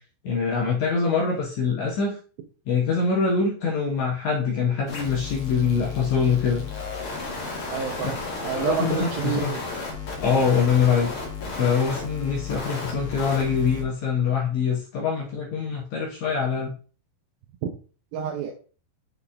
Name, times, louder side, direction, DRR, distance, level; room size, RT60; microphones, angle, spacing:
voice 1, 0.2-2.2 2.7-6.7 8.5-9.5 10.2-11.1 11.6-16.8, left 5 dB, 85° left, -2 dB, 1.6 m, -24 dB
sound 1, 4.9-13.8, left 4 dB, 55° left, 1.5 m, -33 dB
voice 2, 7.7-9.6 18.1-18.5, right 8 dB, 75° right, 0 dB, 2.3 m, -29 dB
6.8 x 4.3 x 3.6 m, 0.39 s
omnidirectional pair, 4.8 m